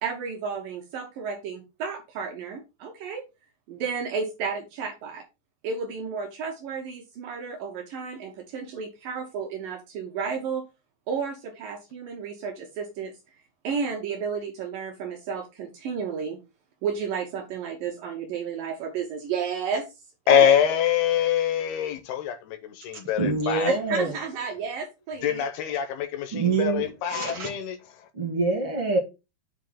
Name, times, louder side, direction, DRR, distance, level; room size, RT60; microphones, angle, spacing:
voice 1, 0.0-3.2 3.7-5.2 5.6-10.7 11.1-13.1 13.6-16.4 16.8-19.9 20.3-20.5 23.7-25.4, right 6 dB, 80° right, 2.0 m, -32 dB
voice 2, 20.3-23.7 25.2-27.8, left 9 dB, 80° left, 2.4 m, -24 dB
voice 3, 23.2-24.1 26.3-27.5 28.1-29.0, right 3 dB, 60° right, 1.4 m, -25 dB
8.1 x 2.8 x 5.5 m
omnidirectional pair, 5.2 m